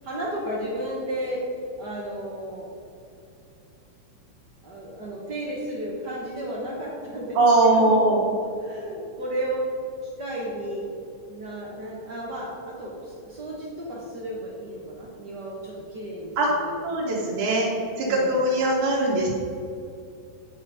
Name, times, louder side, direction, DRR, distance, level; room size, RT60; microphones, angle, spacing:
voice 1, 0.0-1.5 1.8-2.7 4.6-8.0 8.6-9.7 10.0-10.9 11.3-16.8 18.1-18.4, right 1 dB, 60° right, -4 dB, 1.1 m, -33 dB
voice 2, 7.4-8.2 16.4-16.5 16.8-17.7 18.0-19.4, right 2 dB, 80° right, -6 dB, 2.6 m, -21 dB
9.3 x 5.6 x 4.8 m, 2.6 s
omnidirectional pair, 3.4 m